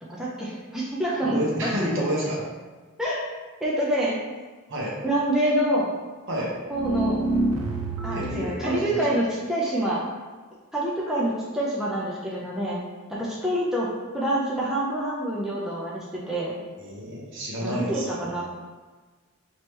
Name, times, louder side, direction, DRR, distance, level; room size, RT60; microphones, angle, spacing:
voice 1, 0.0-2.1 3.0-3.2 3.6-4.2 5.0-5.9 6.7-7.3 8.0-10.0 10.7-12.8 13.1-16.6 17.6-18.4, right 1 dB, ahead, -6 dB, 0.5 m, -27 dB
voice 2, 1.2-2.4 4.7-5.0 6.3-6.5 8.1-9.0 16.8-18.4, equal, 55° right, -3 dB, 1.0 m, -30 dB
sound 1, 6.7-8.5, right 1 dB, 80° right, 0.5 m, -26 dB
3.2 x 3.0 x 4.5 m, 1.4 s
head